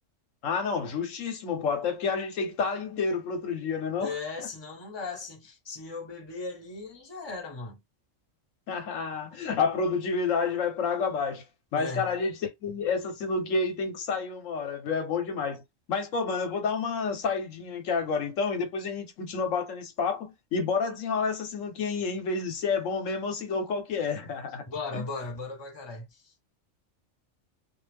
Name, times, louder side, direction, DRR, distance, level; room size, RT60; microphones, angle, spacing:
voice 1, 0.4-4.5 8.7-11.4 11.7-15.6 15.9-24.6 24.9-25.0, left 5 dB, 80° left, 1.2 m, -29 dB
voice 2, 4.0-7.8 11.7-12.1 24.7-26.3, left 3 dB, 25° left, 0.8 m, -37 dB
2.5 x 2.4 x 3.3 m
omnidirectional pair, 1.3 m